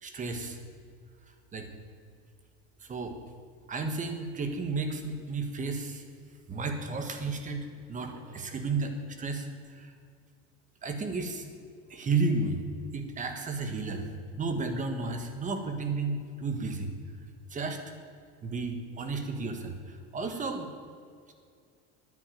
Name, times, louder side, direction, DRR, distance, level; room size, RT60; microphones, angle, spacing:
voice 1, 0.0-0.6 1.5-1.7 2.8-3.2 3.7-6.0 6.5-9.9 10.8-11.4 11.9-14.1 14.4-16.9 17.5-17.8 18.4-20.7, right 3 dB, 25° right, 6 dB, 1.6 m, -33 dB
10.0 x 9.5 x 9.2 m, 2.2 s
cardioid pair, 150°, 31 cm